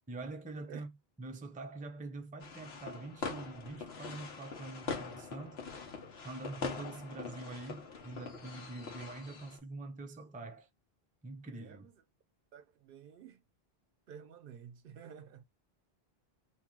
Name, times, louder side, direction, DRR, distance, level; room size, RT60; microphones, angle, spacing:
voice 1, 0.1-0.9 1.2-5.7 6.2-10.7 11.2-11.9, right 3 dB, 10° right, 0.4 m, -45 dB
sound 1, 2.4-9.6, left 5 dB, 80° left, 1.1 m, -43 dB
voice 2, 11.5-11.9 12.5-13.4 14.1-15.4, right 8 dB, 65° right, 0.7 m, -51 dB
3.0 x 2.6 x 3.6 m
omnidirectional pair, 1.0 m